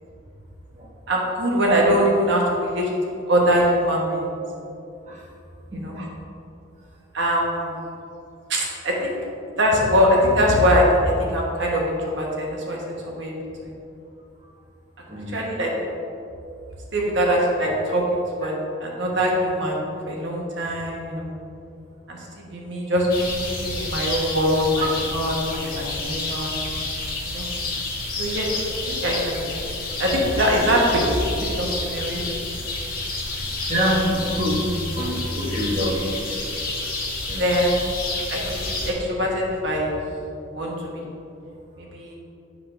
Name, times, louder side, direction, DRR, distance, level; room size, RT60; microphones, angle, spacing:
voice 1, 1.1-2.9 3.3-4.3 5.7-6.1 7.1-7.7 8.5-9.2 9.6-12.8 13.2-13.3 13.6-13.7 15.3-15.7 16.9-18.5 18.8-21.3 22.1-22.2 22.5-26.6 27.3-27.4 28.2-28.5 28.8-29.4 30.0-32.2 37.4-38.0 38.3-38.4 38.7-39.9 40.5-40.7 41.9-42.2, equal, 65° right, -2 dB, 1.2 m, -22 dB
voice 2, 15.1-15.4 33.7-34.6 34.9-36.1 37.3-37.4, equal, 35° right, -5 dB, 1.0 m, -25 dB
sound 1, 23.1-38.9, left 2 dB, 50° left, 1.3 m, -29 dB
7.6 x 6.0 x 3.3 m, 2.7 s
head